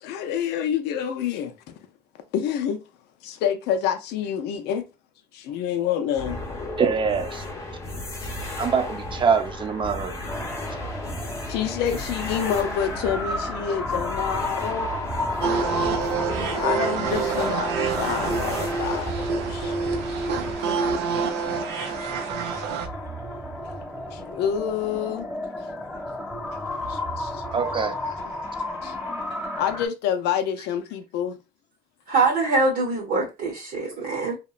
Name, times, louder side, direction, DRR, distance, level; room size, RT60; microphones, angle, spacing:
voice 1, 0.0-1.7 2.3-2.8 3.2-4.9 5.3-6.4 8.2-8.3 11.5-14.9 16.6-20.2 20.6-20.7 21.9-22.1 22.7-22.8 24.1-25.3 26.9-27.4 28.2-28.3 28.8-28.9 29.6-31.4, left 9 dB, 85° left, 0.4 m, -28 dB
sound 1, 6.1-20.6, left 1 dB, 15° left, 0.7 m, -34 dB
voice 2, 6.8-7.4 8.6-10.2 27.5-27.9, right 6 dB, 30° right, 0.5 m, -24 dB
sound 2, 10.3-29.9, left 1 dB, ahead, 1.0 m, -33 dB
sound 3, 15.4-22.9, right 5 dB, 85° right, 0.5 m, -27 dB
voice 3, 32.1-34.3, right 3 dB, 60° right, 0.8 m, -23 dB
2.9 x 2.1 x 2.3 m
cardioid pair, 110°, 17 cm